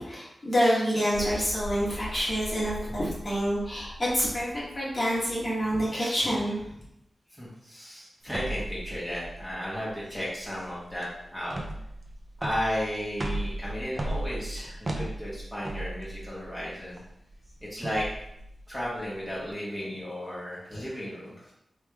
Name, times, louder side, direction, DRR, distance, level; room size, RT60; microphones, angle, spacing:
voice 1, 0.1-6.6 20.7-20.8, equal, 45° left, -7 dB, 1.5 m, -27 dB
sound 1, 1.1-5.8 6.1-6.2, left 1 dB, 75° right, 1.0 m, -41 dB
voice 2, 7.3-11.6 12.4-17.0 17.7-18.1 18.7-21.3, equal, ahead, -8 dB, 1.2 m, -34 dB
sound 2, 8.3-19.5, right 1 dB, 40° right, 0.5 m, -37 dB
3.2 x 3.1 x 2.3 m, 0.80 s
cardioid pair, 50°, 0 cm